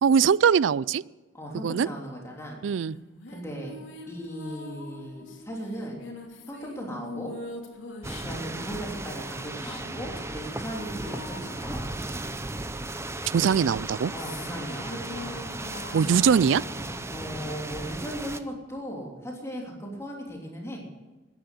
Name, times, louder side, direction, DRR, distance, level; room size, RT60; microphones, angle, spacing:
voice 1, 0.0-1.0 1.6-1.9 2.6-3.0 13.3-14.1 15.9-16.6, right 7 dB, 75° right, 22 dB, 0.4 m, -21 dB
voice 2, 1.3-2.6 3.3-3.8 4.0-6.0 6.5-7.3 8.2-11.9 14.1-15.5 17.1-20.8, equal, 15° left, -1 dB, 3.2 m, -37 dB
sound 1, 2.9-12.8 13.6-18.3, left 2 dB, 80° left, 2.8 m, -43 dB
sound 2, 8.0-18.4, right 2 dB, 15° right, 0.7 m, -36 dB
14.0 x 10.5 x 8.3 m, 1.2 s
head